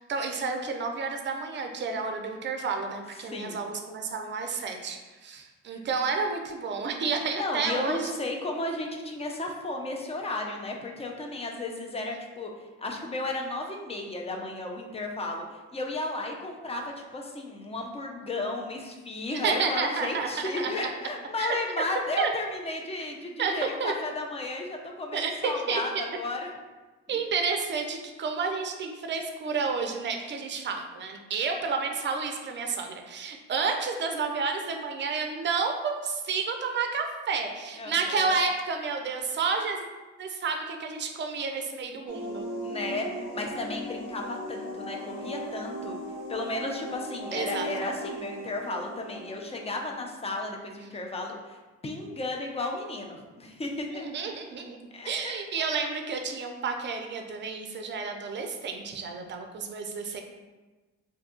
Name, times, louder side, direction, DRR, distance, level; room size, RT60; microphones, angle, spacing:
voice 1, 0.0-8.1 19.3-20.9 21.4-21.6 22.2-22.3 23.4-23.9 25.1-25.8 27.1-39.8 40.2-42.5 47.3-47.7 53.9-54.8 55.0-60.2, right 4 dB, 40° right, 4 dB, 0.5 m, -30 dB
voice 2, 3.2-3.6 5.7-5.8 7.4-12.5 12.8-26.5 27.1-27.2 37.8-38.4 42.6-46.0 46.3-51.6 51.8-54.1 54.9-55.7, left 2 dB, 20° left, 1 dB, 0.5 m, -34 dB
sound 1, 42.1-50.4, equal, 55° left, 1.2 m, -38 dB
2.6 x 2.3 x 3.6 m, 1.2 s
cardioid pair, 90°, 30 cm